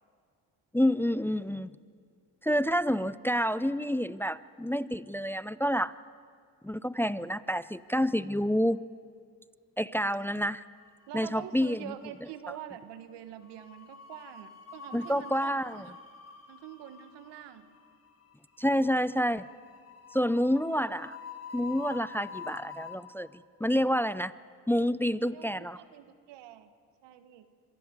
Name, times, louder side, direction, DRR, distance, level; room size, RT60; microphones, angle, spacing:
voice 1, 0.7-1.7 2.4-5.9 6.6-8.9 9.8-10.6 11.1-11.9 14.9-15.9 18.6-19.5 20.1-21.2 21.5-24.3 24.7-25.8, equal, 5° left, 17 dB, 0.5 m, -28 dB
sound 1, 10.9-11.7 12.0-12.2 13.4-23.0, left 6 dB, 35° left, 3.9 m, -47 dB
voice 2, 11.1-15.8 16.5-17.7 25.3-26.7 27.0-27.5, right 11 dB, 90° right, 11 dB, 1.4 m, -45 dB
25.0 x 16.5 x 8.2 m, 2.2 s
supercardioid pair, 65°, 41 cm